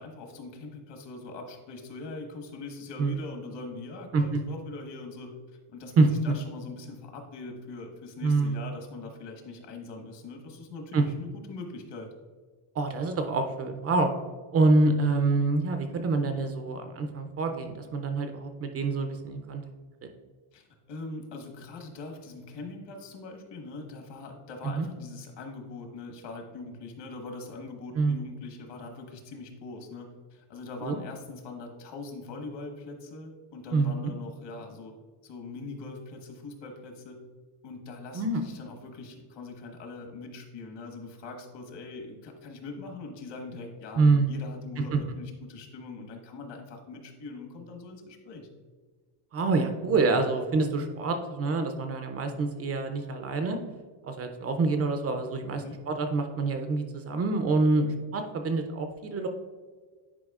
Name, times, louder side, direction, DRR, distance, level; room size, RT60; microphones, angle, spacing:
voice 1, 0.0-5.3 5.7-12.1 20.5-34.9 35.2-37.2 37.6-48.5 55.6-55.8, left 3 dB, 55° left, 3 dB, 1.3 m, -42 dB
voice 2, 8.2-8.6 10.9-11.0 12.8-14.1 14.5-19.6 24.6-24.9 28.0-28.2 30.8-31.0 33.7-34.1 38.1-38.4 44.0-44.3 44.9-45.0 49.3-53.6 54.0-59.3, right 3 dB, 30° right, 6 dB, 0.4 m, -26 dB
9.7 x 4.7 x 2.4 m, 1.5 s
cardioid pair, 155°, 50 cm